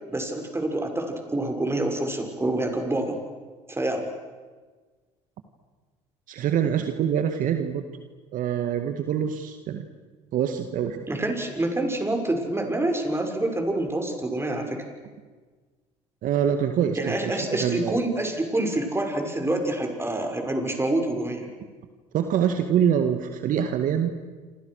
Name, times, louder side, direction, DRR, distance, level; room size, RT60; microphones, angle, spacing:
voice 1, 0.1-3.2 3.7-4.0 11.1-14.8 16.9-21.5, right 1 dB, 15° right, 4 dB, 6.6 m, -27 dB
voice 2, 6.3-7.8 8.3-9.9 10.3-11.0 16.2-18.0 22.1-24.1, right 9 dB, 60° right, 7 dB, 2.1 m, -25 dB
28.5 x 26.5 x 6.6 m, 1.4 s
hypercardioid pair, 65°, 16 cm